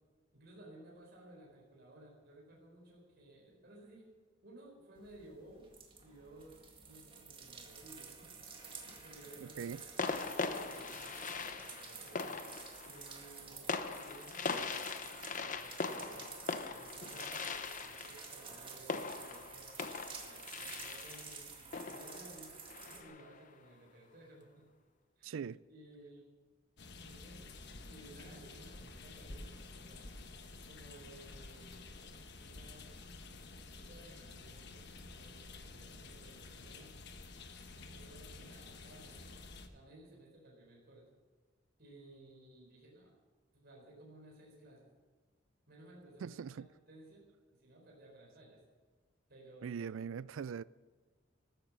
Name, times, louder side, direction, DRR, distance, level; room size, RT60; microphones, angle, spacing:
voice 1, 0.3-4.1 4.4-5.7 6.0-6.6 6.8-8.4 8.8-12.2 12.8-19.8 20.2-22.5 22.8-24.6 25.2-25.4 25.7-26.3 27.0-27.5 27.9-30.2 30.7-31.9 32.4-33.0 33.8-34.8 35.1-36.9 37.9-39.4 39.7-41.1 41.8-43.2 43.5-44.9 45.7-46.6 46.9-47.3 47.6-48.6 49.3-49.8, right 1 dB, 55° right, 4.3 m, -57 dB
sound 1, 5.0-23.0, right 5 dB, 25° right, 2.1 m, -51 dB
sound 2, 8.5-9.1 10.0-23.4, left 4 dB, 40° left, 0.8 m, -41 dB
voice 2, 9.4-9.8 25.2-25.6 46.2-46.7 49.6-50.6, right 6 dB, 80° right, 0.4 m, -41 dB
sound 3, 26.8-39.7, left 3 dB, 60° left, 1.2 m, -51 dB
13.5 x 13.5 x 6.3 m
head